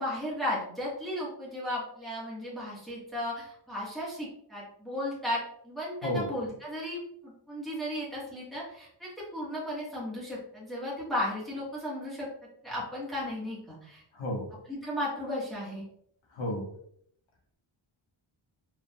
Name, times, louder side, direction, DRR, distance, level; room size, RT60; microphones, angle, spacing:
voice 1, 0.0-12.3 12.6-14.0 14.7-15.8, left 1 dB, ahead, -8 dB, 1.6 m, -35 dB
voice 2, 6.0-6.3 14.1-14.5 16.3-16.7, left 1 dB, 70° left, 0 dB, 1.4 m, -31 dB
4.7 x 3.7 x 2.4 m, 0.69 s
wide cardioid pair, 155°, 48 cm